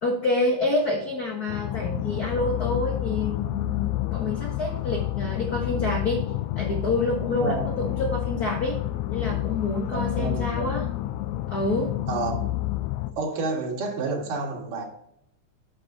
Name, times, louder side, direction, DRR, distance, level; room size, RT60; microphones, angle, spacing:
voice 1, 0.0-6.2 6.5-8.8 9.1-10.9 11.5-11.9, left 2 dB, 70° left, -1 dB, 0.8 m, -27 dB
sound 1, 1.5-13.1, left 14 dB, 85° left, 1.5 m, -29 dB
voice 2, 7.4-7.9 9.9-10.7 12.1-12.4 13.2-14.9, right 3 dB, 85° right, 0 dB, 3.2 m, -29 dB
9.0 x 6.7 x 2.7 m, 0.75 s
omnidirectional pair, 3.7 m